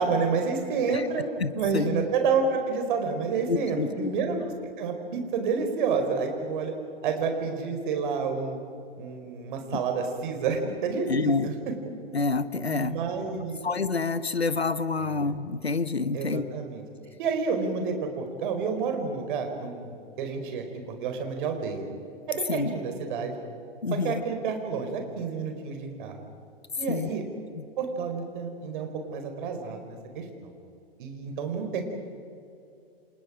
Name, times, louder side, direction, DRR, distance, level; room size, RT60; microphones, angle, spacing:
voice 1, 0.0-1.3 1.5-6.7 7.0-8.6 9.0-11.5 12.7-13.6 15.0-15.3 16.1-16.8 17.2-21.8 22.3-23.3 23.9-26.1 26.8-27.2 27.8-30.5 31.0-31.8, right 5 dB, 50° right, 5 dB, 4.5 m, -29 dB
voice 2, 1.4-1.9 3.5-4.1 11.1-11.5 12.1-13.0 13.6-16.4 22.5-22.7 23.8-24.2 26.9-27.1, left 4 dB, 85° left, 14 dB, 1.1 m, -27 dB
29.5 x 27.0 x 5.0 m, 2.5 s
figure-of-eight pair, 105°, 31 cm